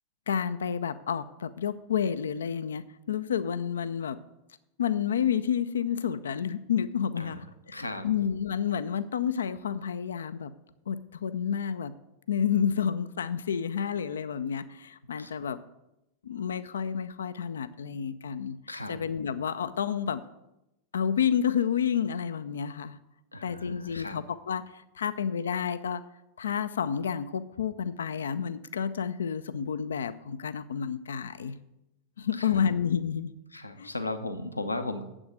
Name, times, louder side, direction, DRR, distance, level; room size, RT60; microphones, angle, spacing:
voice 1, 0.3-4.2 4.8-10.5 10.9-11.9 12.3-15.6 16.2-18.6 18.9-20.2 20.9-23.0 23.4-26.0 26.4-31.5 32.2-33.3 33.8-33.9, left 8 dB, 65° left, 13 dB, 0.4 m, -30 dB
voice 2, 7.1-8.1 15.2-15.3 18.7-19.0 23.3-24.2 32.3-32.7 33.5-35.0, left 2 dB, 85° left, 8 dB, 0.8 m, -36 dB
7.9 x 6.1 x 7.7 m, 0.89 s
figure-of-eight pair, 90°, 0 cm